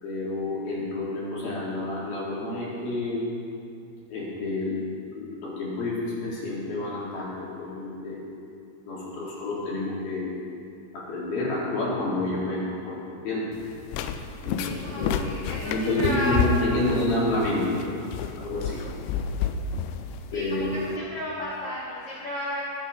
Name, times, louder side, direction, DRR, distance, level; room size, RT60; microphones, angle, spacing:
voice 1, 0.0-3.3 4.1-4.8 5.1-8.2 8.9-10.3 10.9-13.5 14.4-15.2 15.6-17.9 18.4-18.8 20.3-20.9, left 2 dB, 60° left, -7 dB, 4.8 m, -29 dB
sound 1, 13.5-21.0, left 7 dB, 90° left, 2.9 m, -31 dB
voice 2, 14.6-16.4 16.9-17.2 19.1-19.4 20.3-22.6, left 1 dB, 40° left, -9 dB, 2.8 m, -34 dB
23.0 x 8.7 x 4.1 m, 2.6 s
omnidirectional pair, 5.1 m